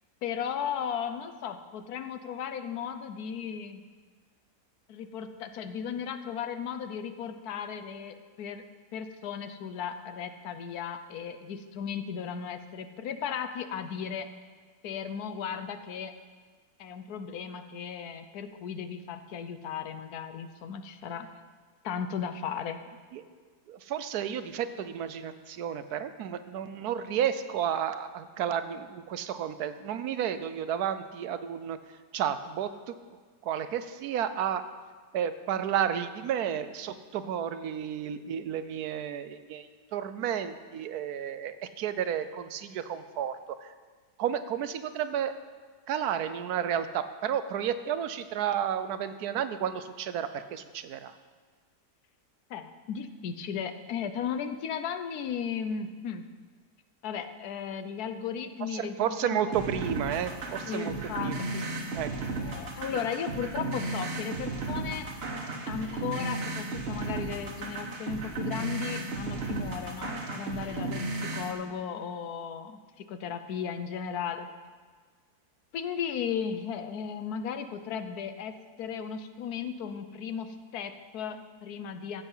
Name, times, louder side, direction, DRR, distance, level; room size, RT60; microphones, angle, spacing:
voice 1, 0.2-3.8 4.9-8.6 8.9-14.3 14.8-16.1 16.8-21.3 21.8-22.8 52.5-56.2 57.0-59.6 60.7-61.7 62.4-65.1 65.7-71.0 71.3-74.5 75.7-78.5 78.8-82.2, left 7 dB, 70° left, 9 dB, 1.2 m, -36 dB
voice 2, 23.7-31.8 32.1-33.0 33.4-34.6 35.1-43.7 44.2-45.3 45.9-51.1 58.6-60.9 61.2-61.4 61.9-62.1 62.9-63.0, right 9 dB, 70° right, 12 dB, 1.2 m, -32 dB
sound 1, 59.5-71.5, right 2 dB, 40° right, 1.4 m, -34 dB
15.0 x 8.0 x 5.6 m, 1.5 s
omnidirectional pair, 1.8 m